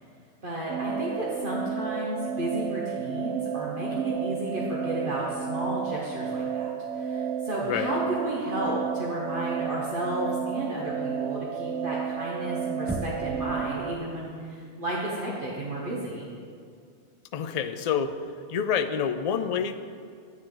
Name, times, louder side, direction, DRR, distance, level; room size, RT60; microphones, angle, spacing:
voice 1, 0.4-6.7 6.9-16.3, right 1 dB, 50° right, -5 dB, 1.3 m, -32 dB
sound 1, 0.7-14.0, right 7 dB, 90° right, 0.9 m, -32 dB
voice 2, 7.6-8.0 17.3-18.1 18.5-19.8, left 7 dB, 55° left, 9 dB, 0.4 m, -27 dB
Knock, 12.9-13.5, right 1 dB, 15° right, 0.4 m, -33 dB
9.5 x 8.9 x 3.9 m, 2.3 s
omnidirectional pair, 1.2 m